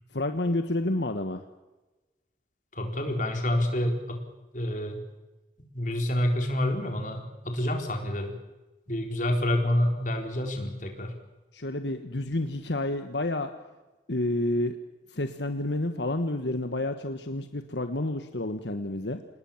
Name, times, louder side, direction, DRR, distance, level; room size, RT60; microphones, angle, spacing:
voice 1, 0.1-1.4 11.5-13.5 14.1-14.8 15.1-19.2, left 1 dB, 75° left, 8 dB, 1.4 m, -29 dB
voice 2, 2.7-4.2 4.5-5.0 5.7-8.3 8.9-11.1, left 1 dB, 45° left, 4 dB, 4.1 m, -28 dB
27.0 x 19.5 x 7.3 m, 1.1 s
head